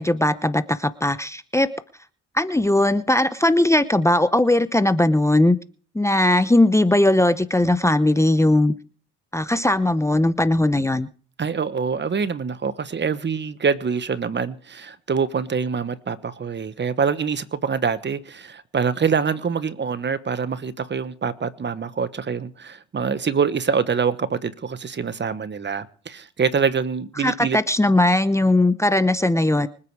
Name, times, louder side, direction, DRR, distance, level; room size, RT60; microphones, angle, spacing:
voice 1, 0.0-1.7 2.3-5.6 5.9-8.7 9.3-11.1 27.2-29.7, left 1 dB, 10° left, 0.8 m, -19 dB
voice 2, 11.4-27.6, right 6 dB, 35° right, 1.2 m, -25 dB
25.0 x 8.6 x 4.8 m
cardioid pair, 90°, 30 cm